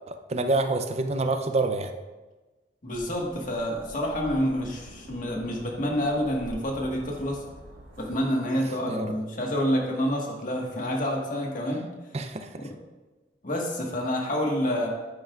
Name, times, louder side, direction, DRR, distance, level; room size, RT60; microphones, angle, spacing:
voice 1, 0.1-1.9 8.8-9.1 12.1-12.7, right 2 dB, 35° right, 7 dB, 0.6 m, -27 dB
voice 2, 2.8-7.4 8.0-11.9 12.6-12.7 13.4-14.9, equal, 50° left, -1 dB, 1.6 m, -28 dB
sound 1, 2.9-8.1, equal, 80° right, 2.8 m, -46 dB
9.8 x 8.5 x 2.5 m, 1.2 s
head